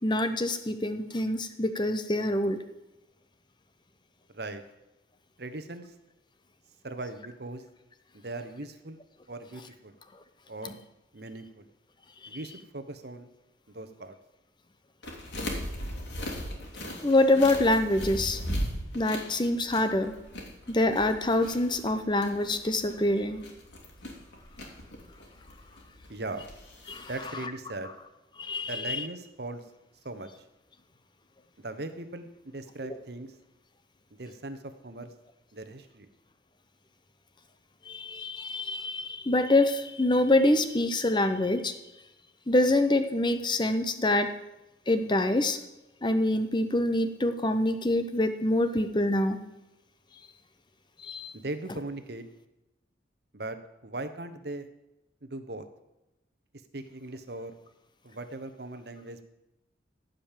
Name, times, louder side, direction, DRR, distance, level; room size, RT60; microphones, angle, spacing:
voice 1, 0.0-2.6 10.6-10.8 17.0-18.4 18.9-20.1 20.7-23.4 26.9-27.1 27.4-27.5 28.4-29.1 37.8-41.7 42.5-44.3 44.9-45.6 46.0-49.4 51.0-51.3, left 1 dB, 25° left, 9 dB, 0.8 m, -25 dB
voice 2, 5.4-5.9 6.8-7.6 8.1-9.9 10.5-10.8 11.1-11.7 12.3-13.3 13.7-14.2 26.1-26.4 27.1-27.9 28.7-29.6 30.0-30.3 31.6-33.3 34.2-35.1 35.5-36.1 51.3-52.2 53.3-53.6 53.8-54.7 55.2-55.7 56.7-57.5 58.0-59.2, right 2 dB, 60° right, 10 dB, 1.0 m, -39 dB
sound 1, 15.0-27.2, equal, 70° left, 2.8 m, -38 dB
15.0 x 5.3 x 7.4 m, 0.95 s
head